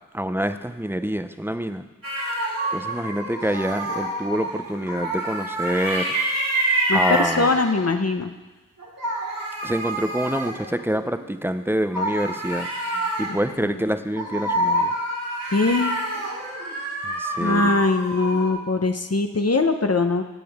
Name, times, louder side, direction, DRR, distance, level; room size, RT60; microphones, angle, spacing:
voice 1, 0.1-1.8 2.7-6.1 6.9-7.5 9.6-12.7 13.2-14.9 17.0-17.8, equal, 5° right, 9 dB, 0.5 m, -26 dB
sound 1, 2.0-8.0 8.8-11.2 11.9-18.5, right 1 dB, 90° right, 3.2 m, -27 dB
voice 2, 6.9-8.3 13.3-13.4 13.6-13.7 15.5-15.9 17.4-20.2, left 3 dB, 45° left, 7 dB, 0.9 m, -21 dB
16.5 x 8.4 x 3.6 m, 1.1 s
wide cardioid pair, 50°, 33 cm